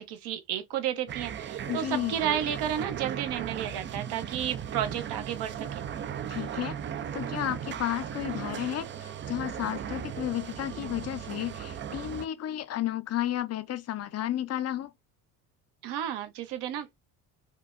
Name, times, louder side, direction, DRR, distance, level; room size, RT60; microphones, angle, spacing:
voice 1, 0.0-5.8 15.8-16.9, right 10 dB, 65° right, 1.0 m, -32 dB
sound 1, 1.1-12.3, right 9 dB, 30° right, 0.4 m, -37 dB
voice 2, 1.7-2.2 6.3-6.8 7.1-14.9, left 12 dB, 35° left, 0.5 m, -32 dB
5.0 x 2.2 x 2.4 m
supercardioid pair, 75°, 43 cm